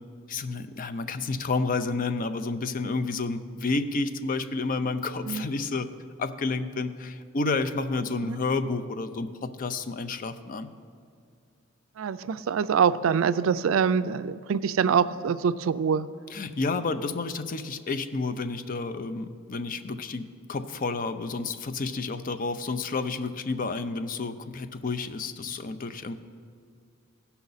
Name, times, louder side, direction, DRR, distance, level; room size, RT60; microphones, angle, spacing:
voice 1, 0.3-5.9 6.2-10.7 16.3-26.1, left 3 dB, 40° left, 11 dB, 0.5 m, -30 dB
voice 2, 12.0-16.1, right 6 dB, 70° right, 14 dB, 0.4 m, -25 dB
17.0 x 5.7 x 4.0 m, 2.4 s
head